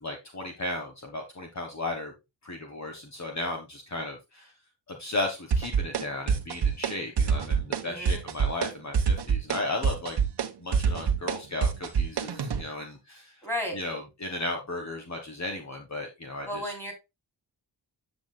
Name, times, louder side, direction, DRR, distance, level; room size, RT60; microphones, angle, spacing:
voice 1, 0.0-2.1 2.4-4.5 5.0-10.2 10.6-13.3 13.7-16.7, left 2 dB, 40° left, 3 dB, 1.5 m, -35 dB
sound 1, 5.5-6.0 6.3-6.9 7.2-7.8 8.1-8.7 8.9-12.6, right 6 dB, 65° right, 1.2 m, -25 dB
voice 2, 7.8-8.2 13.4-13.8 16.5-16.9, equal, 5° left, 0 dB, 3.6 m, -33 dB
8.7 x 7.9 x 2.3 m, 0.24 s
wide cardioid pair, 180°, 44 cm